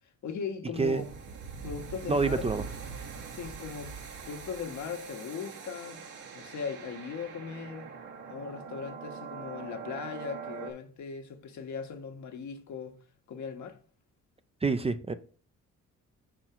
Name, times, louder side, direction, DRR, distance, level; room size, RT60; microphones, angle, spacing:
voice 1, 0.2-1.1 1.6-2.5 3.3-4.0 4.2-6.0 6.3-7.9 8.3-13.0 13.3-13.8, left 6 dB, 70° left, 1.3 m, -38 dB
sound 1, 0.7-10.7, right 5 dB, 80° right, 2.0 m, -42 dB
voice 2, 2.1-2.6 14.6-15.1, right 4 dB, 20° right, 0.5 m, -27 dB
4.7 x 4.4 x 5.9 m
cardioid pair, 90°, 30 cm